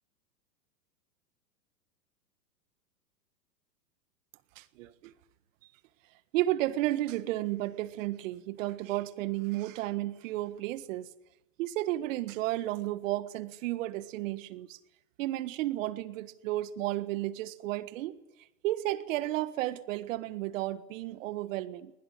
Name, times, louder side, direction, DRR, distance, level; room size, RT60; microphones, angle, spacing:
voice 1, 4.5-5.1 6.3-11.1 11.6-14.8 15.2-18.2 18.6-21.9, right 16 dB, 50° right, 12 dB, 1.7 m, -33 dB
21.5 x 20.5 x 9.7 m, 0.95 s
hypercardioid pair, 120°, 49 cm